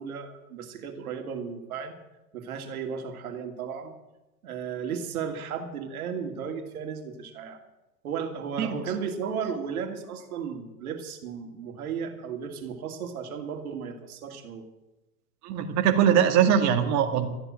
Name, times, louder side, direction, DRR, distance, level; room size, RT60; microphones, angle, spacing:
voice 1, 0.0-2.0 2.3-3.9 4.4-7.6 8.0-14.6, right 6 dB, 70° right, 5 dB, 2.7 m, -34 dB
voice 2, 15.4-17.3, right 8 dB, 35° right, 5 dB, 2.0 m, -22 dB
13.5 x 10.0 x 8.9 m, 1.0 s
hypercardioid pair, 115°, 46 cm